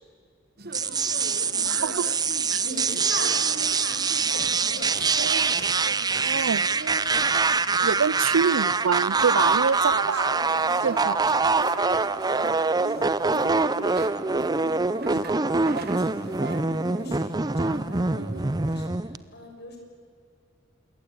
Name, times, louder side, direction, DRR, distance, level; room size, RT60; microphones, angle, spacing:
sound 1, 0.6-18.9, right 3 dB, 50° right, 1.4 m, -41 dB
sound 2, 0.7-19.2, right 4 dB, 20° right, 0.6 m, -24 dB
voice 1, 0.8-2.0 2.3-4.9 7.8-8.1 9.1-16.6 16.9-19.8, left 2 dB, 55° left, 6.2 m, -42 dB
voice 2, 1.7-2.1 2.5-2.6 6.2-6.7 7.8-10.3 10.8-11.2 12.4-12.5 15.1-15.2, right 6 dB, 80° right, 0.5 m, -26 dB
27.0 x 22.0 x 8.6 m
head